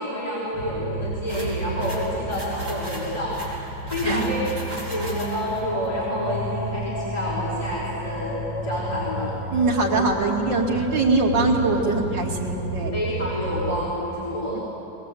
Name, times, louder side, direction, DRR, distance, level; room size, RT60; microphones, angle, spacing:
voice 1, 0.0-3.6 3.9-9.4 12.9-14.6, equal, 15° left, -7 dB, 4.6 m, -28 dB
sound 1, 0.5-13.9, equal, 70° left, 2.5 m, -32 dB
sound 2, 1.3-5.6, equal, 20° right, 5.2 m, -38 dB
voice 2, 4.0-4.4 9.5-12.9 14.5-14.6, right 3 dB, 85° right, -1 dB, 3.1 m, -22 dB
21.0 x 20.5 x 8.4 m, 3.0 s
omnidirectional pair, 2.0 m